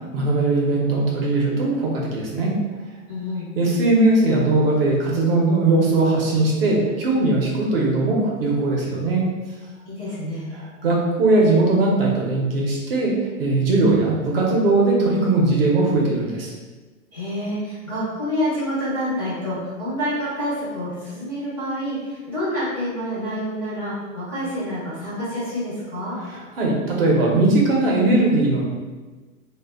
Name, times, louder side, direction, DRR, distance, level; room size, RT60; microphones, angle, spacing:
voice 1, 0.1-2.5 3.6-9.2 10.5-13.1 13.4-16.5 26.2-28.6, right 2 dB, 45° right, -2 dB, 0.5 m, -19 dB
voice 2, 3.1-3.5 9.9-10.5 17.1-26.2, equal, 15° left, -12 dB, 0.4 m, -27 dB
2.1 x 2.0 x 3.2 m, 1.3 s
hypercardioid pair, 160°, 43 cm